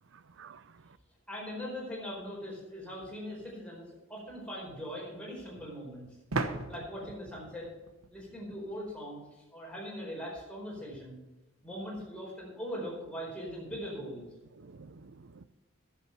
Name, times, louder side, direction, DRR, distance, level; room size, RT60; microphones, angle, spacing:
voice 1, 0.1-0.6 14.6-15.4, right 4 dB, 60° right, 15 dB, 0.6 m, -52 dB
voice 2, 1.3-6.1 6.7-7.7 8.1-11.2 11.6-14.3, equal, 5° left, -4 dB, 4.7 m, -41 dB
sound 1, 3.3-3.4 6.3-8.9, right 3 dB, 80° right, 1.0 m, -37 dB
11.5 x 7.5 x 7.1 m, 1.1 s
head